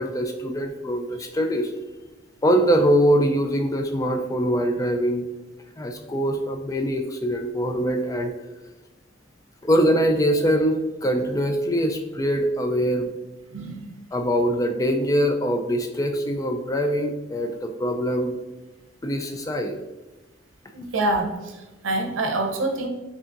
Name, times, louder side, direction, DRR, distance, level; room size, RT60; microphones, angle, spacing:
voice 1, 0.0-1.7 2.4-5.3 5.8-8.3 9.6-13.1 14.1-18.4 19.0-19.8, equal, 15° left, 5 dB, 0.3 m, -23 dB
voice 2, 13.5-13.9 20.7-22.9, right 2 dB, 90° right, 3 dB, 0.7 m, -26 dB
5.2 x 2.7 x 2.5 m, 1.1 s
head